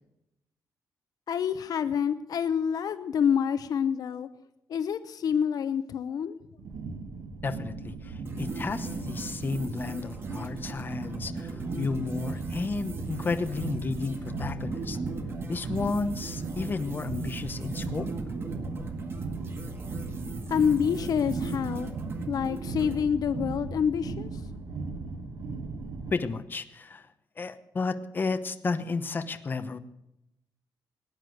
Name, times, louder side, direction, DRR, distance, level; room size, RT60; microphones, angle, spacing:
voice 1, 1.3-4.3 4.7-6.4 20.5-21.9 22.3-24.3, left 7 dB, 60° left, 11 dB, 0.7 m, -27 dB
sound 1, 6.6-26.1, right 4 dB, 80° right, 1.8 m, -37 dB
voice 2, 7.4-15.0 15.5-18.1 26.1-27.0 27.4-29.8, left 4 dB, 30° left, 8 dB, 1.0 m, -32 dB
sound 2, 8.3-23.0, right 3 dB, 35° right, 1.8 m, -38 dB
18.5 x 9.9 x 7.8 m, 0.85 s
wide cardioid pair, 175°, 7 cm